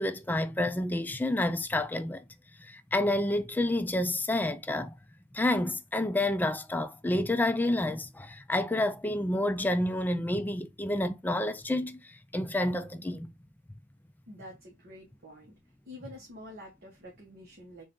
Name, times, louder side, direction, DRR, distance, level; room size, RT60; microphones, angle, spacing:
voice 1, 0.0-2.2 2.7-4.9 5.3-12.0 12.3-13.3, left 1 dB, 10° left, 0.3 m, -29 dB
voice 2, 14.3-15.5 15.9-17.8, left 1 dB, 50° right, 1.2 m, -48 dB
3.7 x 2.6 x 3.5 m
head